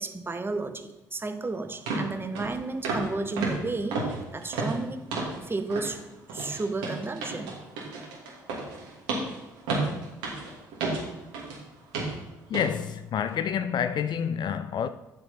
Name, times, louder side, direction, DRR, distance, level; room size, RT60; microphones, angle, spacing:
voice 1, 0.0-4.0 4.3-5.0 5.4-6.0 6.3-7.5, right 3 dB, 20° right, 1.2 m, -32 dB
sound 1, 1.2-1.3 1.9-2.1 2.4-2.6 2.8-3.1 3.4-5.4 5.7-6.0 6.3-11.6 11.9-12.2 12.5-12.7 13.2-13.3, right 3 dB, 70° right, 2.7 m, -32 dB
voice 2, 12.5-14.9, left 8 dB, 45° left, 0.5 m, -28 dB
11.0 x 7.2 x 4.4 m
figure-of-eight pair, 50°, 10 cm